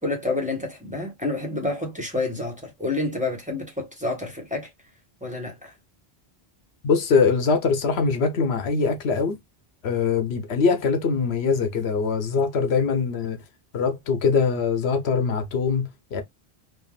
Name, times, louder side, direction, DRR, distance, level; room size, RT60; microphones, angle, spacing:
voice 1, 0.0-4.7 5.2-5.7, left 2 dB, 5° right, 1.1 m, -29 dB
voice 2, 6.8-9.4 9.8-13.4 13.7-16.2, left 5 dB, 75° left, 1.0 m, -22 dB
3.4 x 2.3 x 2.3 m
omnidirectional pair, 1.1 m